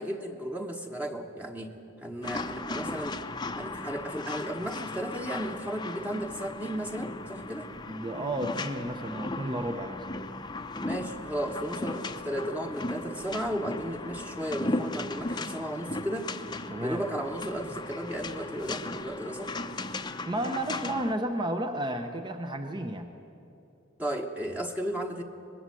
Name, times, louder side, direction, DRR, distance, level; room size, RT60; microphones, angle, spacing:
voice 1, 0.0-3.2 3.5-7.7 10.8-16.3 16.8-19.5 24.0-25.2, equal, 10° right, 2 dB, 1.2 m, -34 dB
sound 1, 2.2-21.1, left 2 dB, 25° left, 0.8 m, -37 dB
voice 2, 7.9-10.0 16.7-17.0 20.3-23.1, right 1 dB, 25° right, 6 dB, 0.9 m, -32 dB
24.0 x 20.5 x 7.7 m, 2.9 s
head